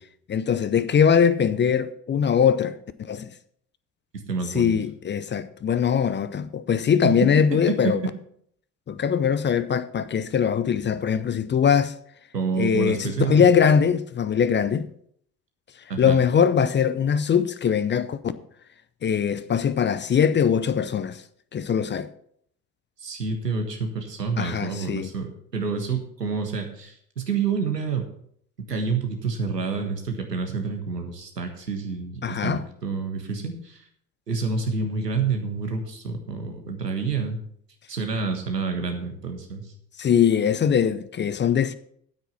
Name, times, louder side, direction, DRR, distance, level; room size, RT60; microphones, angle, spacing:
voice 1, 0.3-3.3 4.5-8.0 8.9-11.9 12.6-14.9 16.0-18.3 19.0-21.2 21.5-22.1 24.4-25.1 32.2-32.6 40.0-41.7, left 7 dB, 25° left, 0.6 m, -22 dB
voice 2, 4.1-4.7 7.0-7.3 7.7-8.1 12.3-13.5 15.9-16.2 23.0-28.1 28.7-33.8 34.3-37.4 37.9-39.6, right 5 dB, 90° right, 1.6 m, -28 dB
9.3 x 8.7 x 5.5 m
figure-of-eight pair, 60°, 47 cm